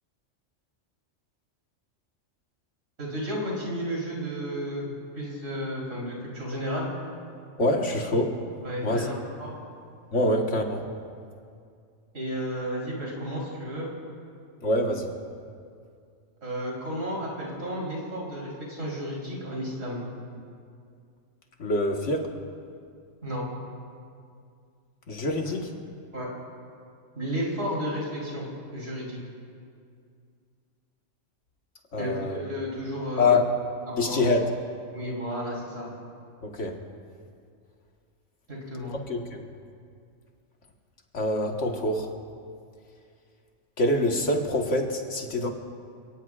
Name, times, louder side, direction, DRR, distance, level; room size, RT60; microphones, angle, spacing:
voice 1, 3.0-6.9 8.6-9.1 9.4-9.5 12.1-13.9 16.4-20.0 23.2-23.5 26.1-26.3 27.1-28.5 28.7-29.2 32.0-33.4 33.9-34.2 34.9-35.9 38.5-38.9, equal, 90° right, -4 dB, 4.3 m, -32 dB
voice 2, 7.6-8.3 8.8-9.1 10.1-10.9 14.6-15.1 21.6-22.3 25.1-25.7 31.9-32.4 33.2-33.5 33.9-34.5 36.4-36.8 38.9-39.4 41.1-42.1 43.8-45.5, left 2 dB, 70° left, 2 dB, 1.8 m, -25 dB
28.0 x 18.0 x 2.5 m, 2.3 s
omnidirectional pair, 1.3 m